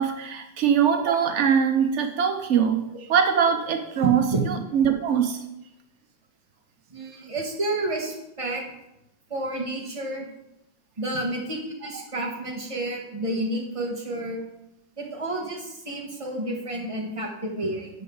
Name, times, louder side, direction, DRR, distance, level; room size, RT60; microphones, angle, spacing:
voice 1, 0.0-5.4 11.9-12.0, right 7 dB, 85° right, 6 dB, 0.6 m, -22 dB
voice 2, 4.0-4.4 6.9-8.6 9.3-10.3 11.0-14.4 15.0-17.9, right 2 dB, 20° right, -1 dB, 1.4 m, -30 dB
10.5 x 6.8 x 3.9 m, 0.88 s
omnidirectional pair, 2.1 m